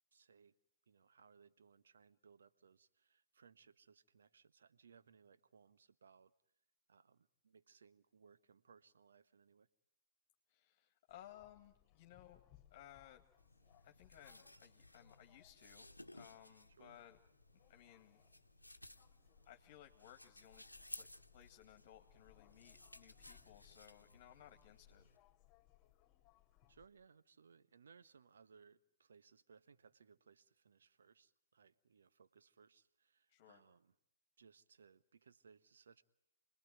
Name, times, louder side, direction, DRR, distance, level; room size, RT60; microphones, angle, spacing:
voice 1, 0.1-0.5 0.9-6.3 6.9-9.7 16.7-17.0 26.7-33.9 34.4-36.0, right 6 dB, 65° right, 12 dB, 1.1 m, -66 dB
voice 2, 10.5-12.4 12.7-13.2 13.8-17.2 17.5-18.2 19.4-20.6 21.0-25.0 33.3-33.6, left 12 dB, 40° left, 4 dB, 1.9 m, -61 dB
sound 1, 11.1-26.9, left 13 dB, 25° left, 2.6 m, -70 dB
sound 2, 13.4-25.2, left 1 dB, 90° left, 1.0 m, -59 dB
29.0 x 20.5 x 9.3 m, 0.85 s
figure-of-eight pair, 120°, 0 cm